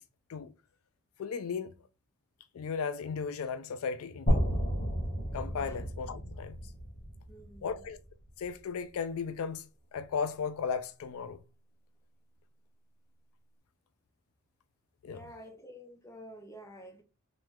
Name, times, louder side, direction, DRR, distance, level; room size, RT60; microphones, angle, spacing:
voice 1, 1.2-1.7 2.5-4.5 5.3-6.6 7.6-8.0 8.4-11.4 15.0-15.3, left 6 dB, 70° left, 0.3 m, -36 dB
sound 1, 4.3-8.3, equal, 35° left, 1.4 m, -32 dB
voice 2, 7.3-7.8 15.0-17.0, equal, 15° left, 0.6 m, -50 dB
3.1 x 3.1 x 3.5 m
head